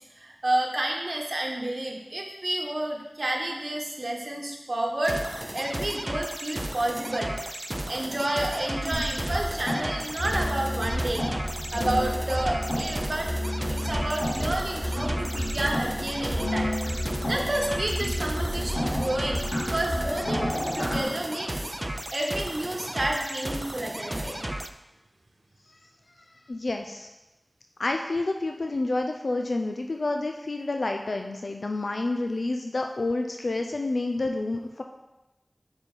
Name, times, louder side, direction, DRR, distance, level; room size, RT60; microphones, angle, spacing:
voice 1, 0.2-5.2 5.5-7.3 7.9-11.3 11.7-13.3 13.7-16.8 17.3-21.5 21.9-24.4, right 1 dB, 60° right, 0 dB, 1.2 m, -30 dB
sound 1, 5.0-24.7, right 1 dB, 25° right, 0.4 m, -34 dB
sound 2, 8.9-21.0, equal, 60° left, 2.8 m, -30 dB
voice 2, 26.2-27.1 27.8-34.8, left 2 dB, 90° left, 4 dB, 0.4 m, -29 dB
6.8 x 4.4 x 5.5 m, 1.0 s
wide cardioid pair, 55°, 0 cm